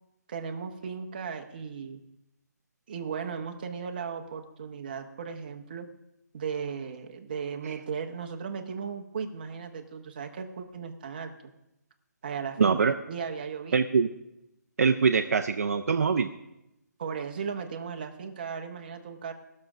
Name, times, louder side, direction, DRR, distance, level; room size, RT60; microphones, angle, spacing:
voice 1, 0.3-2.0 2.9-5.9 6.3-11.5 12.2-13.9 17.0-19.3, right 6 dB, 30° right, 5 dB, 0.9 m, -36 dB
voice 2, 12.6-13.0 13.7-14.1 14.8-16.3, right 5 dB, 55° right, 6 dB, 0.6 m, -23 dB
17.0 x 6.5 x 6.0 m, 0.89 s
hypercardioid pair, 175°, 10 cm